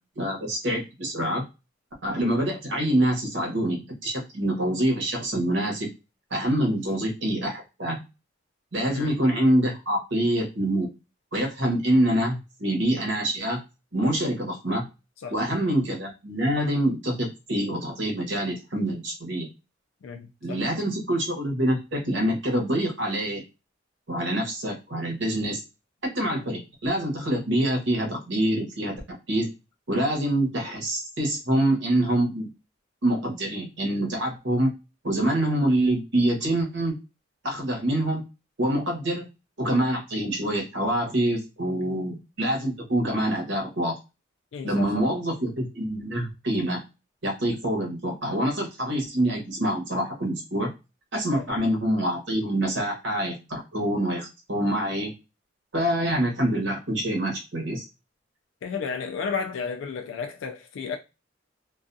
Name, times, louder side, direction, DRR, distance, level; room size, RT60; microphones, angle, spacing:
voice 1, 0.2-1.4 2.0-5.9 6.3-8.1 8.7-10.9 11.3-13.6 13.9-14.8 15.3-19.5 20.4-23.4 24.1-25.6 26.0-28.9 29.3-29.5 29.9-32.5 33.0-34.7 35.0-37.0 37.4-38.2 38.6-39.3 39.6-43.9 44.6-46.8 47.2-50.7 51.1-55.1 55.7-57.9, right 1 dB, 65° right, 1.0 m, -25 dB
voice 2, 20.0-20.6 44.5-44.9 51.4-51.5 58.6-61.0, left 5 dB, 80° left, 0.3 m, -33 dB
2.4 x 2.2 x 2.5 m
head